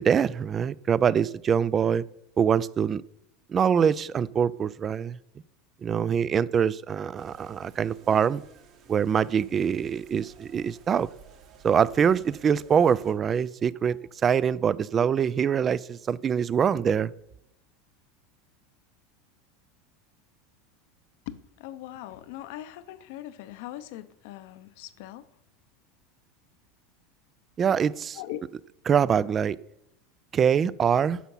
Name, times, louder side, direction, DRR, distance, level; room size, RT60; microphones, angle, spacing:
voice 1, 0.0-2.0 2.4-3.0 3.5-5.2 5.8-8.4 8.9-11.1 11.6-17.1 27.6-28.2 28.9-29.6 30.3-31.2, right 7 dB, 30° right, 0.3 m, -24 dB
sound 1, 7.2-13.1, right 6 dB, 50° right, 1.6 m, -54 dB
voice 2, 21.3-25.2 28.1-28.4, left 13 dB, 70° left, 0.7 m, -40 dB
10.0 x 5.8 x 5.6 m
supercardioid pair, 120°, 0 cm